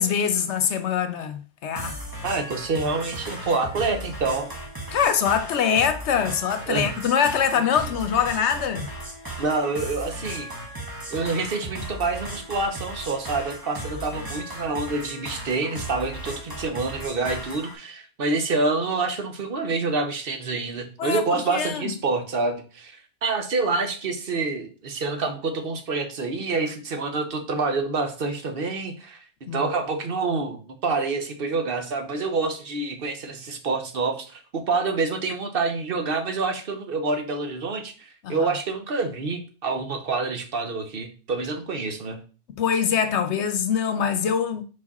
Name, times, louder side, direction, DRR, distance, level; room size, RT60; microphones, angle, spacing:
voice 1, 0.0-2.0 4.9-8.9 21.0-21.9 29.5-29.7 38.2-38.5 42.6-44.6, left 7 dB, 75° left, 1.0 m, -24 dB
sound 1, 1.8-17.8, right 1 dB, 20° right, 1.3 m, -36 dB
voice 2, 2.2-4.5 6.7-6.9 7.5-7.6 9.4-10.5 11.1-29.2 29.5-42.2, right 3 dB, 55° right, 1.1 m, -27 dB
4.8 x 4.6 x 4.2 m
omnidirectional pair, 1.2 m